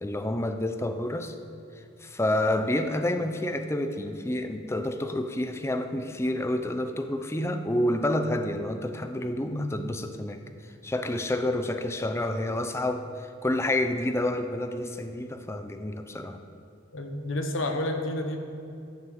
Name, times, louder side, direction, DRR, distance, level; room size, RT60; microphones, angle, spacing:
voice 1, 0.0-1.4 2.0-10.4 10.8-16.4, left 1 dB, 15° left, 7 dB, 0.5 m, -29 dB
voice 2, 16.9-18.4, left 1 dB, 75° left, 5 dB, 1.1 m, -30 dB
11.5 x 6.2 x 7.7 m, 2.5 s
head